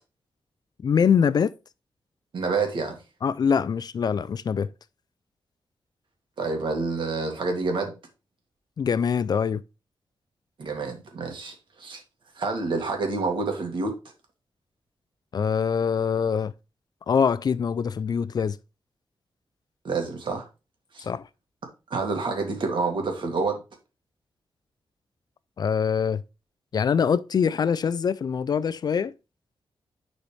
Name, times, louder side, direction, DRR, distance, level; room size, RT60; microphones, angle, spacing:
voice 1, 0.8-1.5 3.2-4.7 8.8-9.6 15.3-16.5 17.1-18.6 21.0-21.3 25.6-26.2 26.7-29.1, left 7 dB, 50° left, 0.4 m, -24 dB
voice 2, 2.3-3.0 6.4-7.9 10.6-12.0 12.4-13.9 19.8-20.5 20.9-21.1 21.9-23.6, right 3 dB, 65° right, 1.9 m, -28 dB
10.0 x 4.1 x 3.2 m
wide cardioid pair, 160°, 9 cm